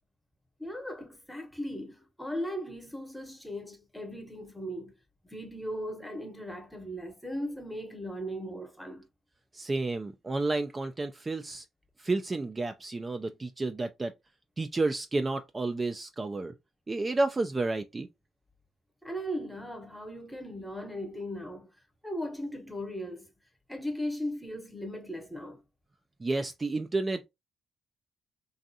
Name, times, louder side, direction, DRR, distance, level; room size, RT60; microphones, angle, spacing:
voice 1, 0.6-4.9 5.2-9.1 19.0-21.7 22.0-23.3 23.7-25.6, equal, 5° left, 0.9 m, -37 dB
voice 2, 9.5-11.7 12.0-14.1 14.6-16.5 16.9-18.1 26.2-27.3, right 2 dB, 25° right, 0.3 m, -31 dB
2.6 x 2.3 x 2.6 m
supercardioid pair, 70°, 0 cm